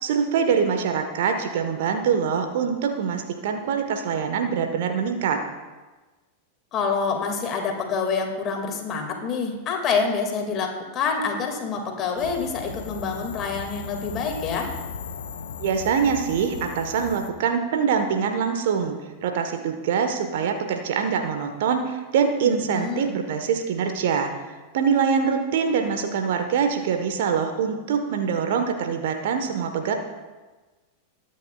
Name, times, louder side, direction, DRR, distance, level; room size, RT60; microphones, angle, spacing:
voice 1, 0.0-5.4 15.6-24.3 24.7-29.9, right 6 dB, 55° right, 6 dB, 1.2 m, -24 dB
voice 2, 6.7-14.7 22.4-23.2, left 5 dB, 30° left, 3 dB, 2.2 m, -27 dB
sound 1, 12.2-17.3, left 7 dB, 60° left, 0.8 m, -37 dB
21.0 x 9.1 x 2.4 m, 1.2 s
figure-of-eight pair, 90°, 0 cm